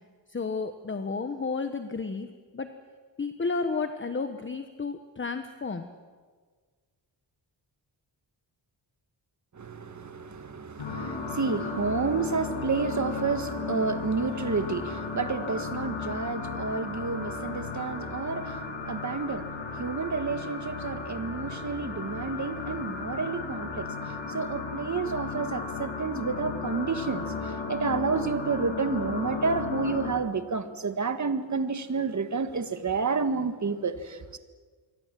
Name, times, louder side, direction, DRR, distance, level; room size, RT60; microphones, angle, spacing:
voice 1, 0.3-2.7 3.2-5.9, left 4 dB, 25° left, 1.2 m, -32 dB
voice 2, 9.5-23.9 24.3-34.4, right 4 dB, 40° right, 1.7 m, -30 dB
sound 1, 10.8-30.1, left 4 dB, 75° left, 6.3 m, -35 dB
27.0 x 23.5 x 7.6 m
wide cardioid pair, 125°, 45 cm